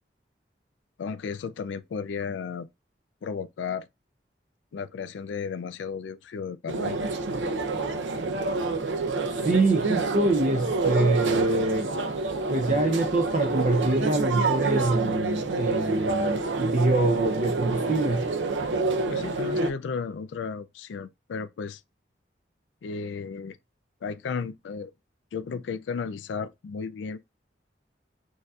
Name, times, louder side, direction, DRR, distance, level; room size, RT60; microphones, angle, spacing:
voice 1, 1.0-2.7 3.2-3.9 4.7-7.0 19.1-21.8 22.8-23.6 24.0-24.9 25.3-27.2, left 5 dB, 85° left, 0.3 m, -34 dB
sound 1, 6.7-19.7, right 3 dB, 85° right, 0.6 m, -28 dB
voice 2, 9.3-11.9 12.5-18.3, right 2 dB, 45° right, 0.5 m, -25 dB
6.4 x 2.6 x 2.4 m
head